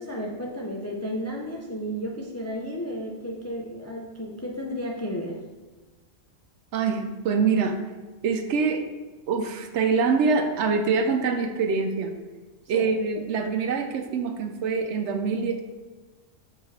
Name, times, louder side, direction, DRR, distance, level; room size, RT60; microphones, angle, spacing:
voice 1, 0.0-5.4 12.7-12.9, equal, 25° left, -1 dB, 0.3 m, -33 dB
voice 2, 6.7-7.8 8.2-8.9 9.3-12.1 12.7-15.6, right 5 dB, 70° right, 6 dB, 0.9 m, -24 dB
6.4 x 4.5 x 3.3 m, 1.2 s
omnidirectional pair, 1.3 m